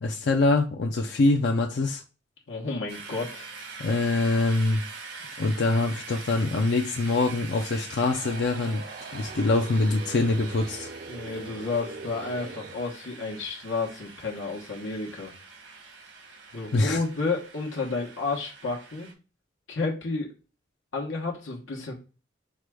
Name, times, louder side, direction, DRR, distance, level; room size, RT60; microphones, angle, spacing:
voice 1, 0.0-2.0 3.8-4.8 5.4-8.8 9.1-10.9 16.7-17.0, left 2 dB, 65° left, 2 dB, 0.5 m, -24 dB
voice 2, 2.5-3.5 11.1-15.3 16.5-19.1 19.7-20.3 20.9-21.9, left 3 dB, 85° left, -1 dB, 1.0 m, -31 dB
sound 1, 2.9-19.1, right 4 dB, 80° right, 1.3 m, -44 dB
sound 2, 7.9-12.8, right 3 dB, 50° right, 0.5 m, -42 dB
4.8 x 2.2 x 4.6 m, 0.34 s
head